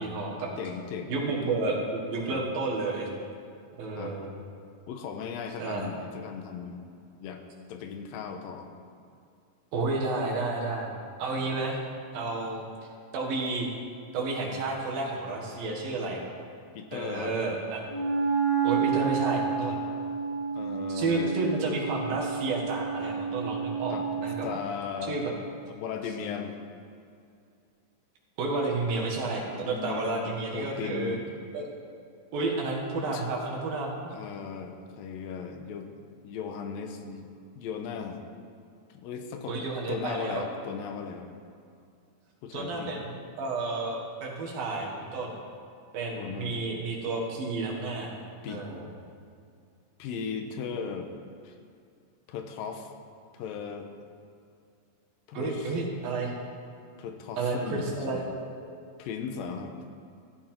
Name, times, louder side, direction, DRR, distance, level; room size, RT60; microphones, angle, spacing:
voice 1, 0.0-0.5 1.1-3.1 3.8-4.3 5.6-5.9 9.7-10.9 11.2-11.8 12.1-12.6 13.1-13.8 14.1-16.2 16.9-17.8 18.6-19.8 20.9-24.6 25.1-25.2 28.4-31.2 31.5-31.7 32.3-34.1 39.5-40.5 42.5-45.3 45.9-48.1 48.5-48.8 55.3-56.3 57.4-58.2, right 3 dB, 85° right, -2 dB, 3.5 m, -31 dB
voice 2, 0.6-1.2 2.3-2.4 3.9-4.2 4.9-6.8 7.2-7.4 7.7-8.7 16.7-17.4 20.5-21.3 23.9-24.1 24.4-25.2 25.6-26.6 29.5-31.2 33.0-33.3 34.1-35.9 36.2-37.3 37.6-38.3 38.9-41.3 42.4-43.0 46.2-46.6 48.4-48.6 50.0-51.1 51.4-51.6 52.3-52.9 53.3-53.9 55.3-55.8 57.0-58.3 59.0-59.7, left 6 dB, 90° left, 5 dB, 2.7 m, -37 dB
Wind instrument woodwind instrument, 17.9-24.6, right 6 dB, 20° right, 2.7 m, -30 dB
14.0 x 11.5 x 4.5 m, 2.4 s
omnidirectional pair, 4.0 m